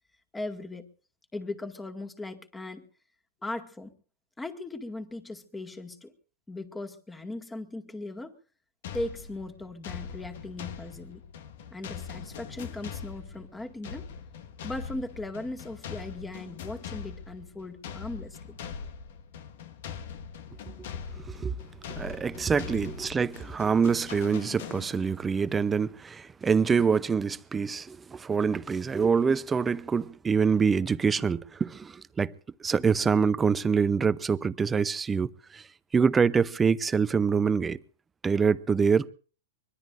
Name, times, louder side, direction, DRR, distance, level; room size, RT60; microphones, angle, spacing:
voice 1, 0.3-0.9 1.3-2.9 3.4-3.9 4.4-6.1 6.5-8.4 8.9-11.2 11.7-14.1 14.6-18.6, left 2 dB, 10° left, 2.1 m, -38 dB
sound 1, 8.8-25.3, left 7 dB, 65° left, 1.6 m, -42 dB
voice 2, 21.9-32.3 32.6-35.6 35.9-37.8 38.2-39.1, right 5 dB, 15° right, 0.7 m, -25 dB
24.0 x 21.5 x 2.6 m
hypercardioid pair, 120°, 0 cm